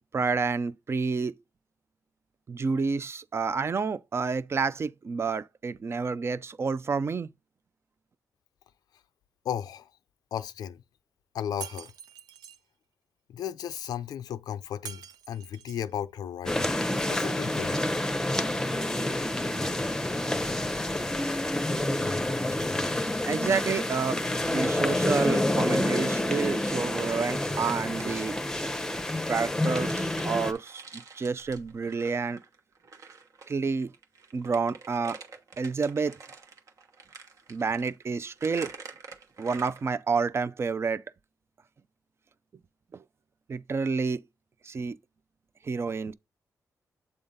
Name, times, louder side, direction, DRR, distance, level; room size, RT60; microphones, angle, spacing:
voice 1, 0.1-1.3 2.5-7.3 23.2-24.2 24.5-28.4 29.3-30.8 31.1-32.4 33.5-33.9 34.3-35.2 35.6-36.2 37.5-38.7 39.4-41.0 43.5-44.2 44.6-45.0 45.6-46.1, right 5 dB, 40° right, 0.5 m, -29 dB
voice 2, 9.4-9.9 10.3-10.8 11.3-11.9 13.3-16.7 17.1-17.8, left 9 dB, 85° left, 0.4 m, -35 dB
Shatter, 11.6-12.6 14.9-15.9, right 9 dB, 90° right, 0.5 m, -44 dB
sound 1, 16.5-30.5, left 1 dB, 10° left, 0.7 m, -28 dB
sound 2, 25.6-26.6 27.0-33.5 33.8-39.9, right 5 dB, 60° right, 1.2 m, -48 dB
7.9 x 3.6 x 4.0 m
cardioid pair, 90°, 7 cm